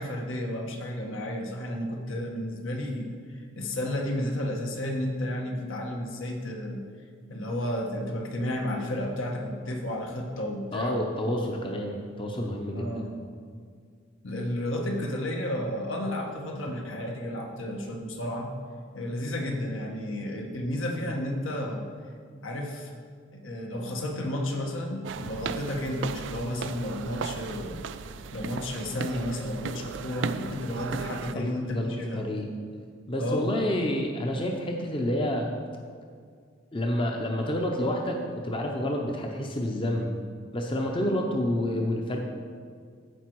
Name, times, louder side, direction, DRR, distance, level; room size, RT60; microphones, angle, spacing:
voice 1, 0.0-6.8 7.3-11.0 11.5-11.6 12.7-13.3 14.2-18.5 18.9-21.9 22.4-22.9 23.3-27.8 28.3-32.2 33.2-33.6, left 1 dB, 75° left, 1 dB, 1.4 m, -32 dB
voice 2, 10.7-13.0 31.3-32.5 33.1-35.5 36.7-40.1 40.5-42.2, left 1 dB, 25° left, 1 dB, 0.7 m, -29 dB
sound 1, 25.0-31.3, right 6 dB, 65° right, 0.3 m, -36 dB
14.5 x 5.2 x 4.7 m, 2.1 s
head